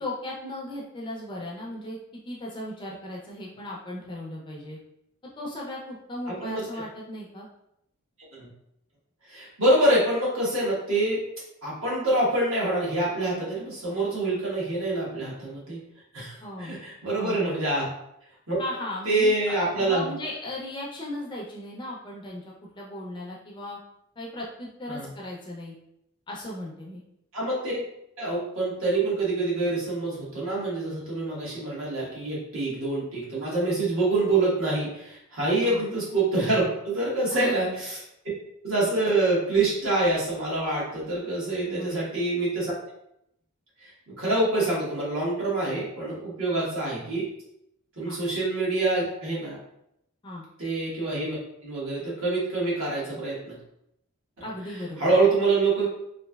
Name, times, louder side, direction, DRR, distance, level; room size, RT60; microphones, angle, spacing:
voice 1, 0.0-2.0 2.3-4.8 5.4-7.5 16.4-16.8 17.1-17.5 18.6-22.4 22.7-23.8 24.2-25.7 26.3-27.0 35.6-35.8 37.3-37.5 41.7-42.0 46.5-46.7 48.1-48.2 50.2-50.4 54.4-55.2, left 1 dB, 20° left, -3 dB, 0.4 m, -36 dB
voice 2, 6.3-6.6 8.3-8.5 9.3-11.2 11.6-15.8 16.1-17.9 18.5-18.6 19.0-20.1 24.9-25.1 27.3-27.8 28.2-38.0 38.6-42.7 43.8-43.9 44.2-47.3 48.0-49.6 50.6-51.4 51.6-53.6 54.4-54.5 55.0-55.9, right 2 dB, 65° right, -6 dB, 1.3 m, -26 dB
3.1 x 2.6 x 2.2 m, 0.78 s
head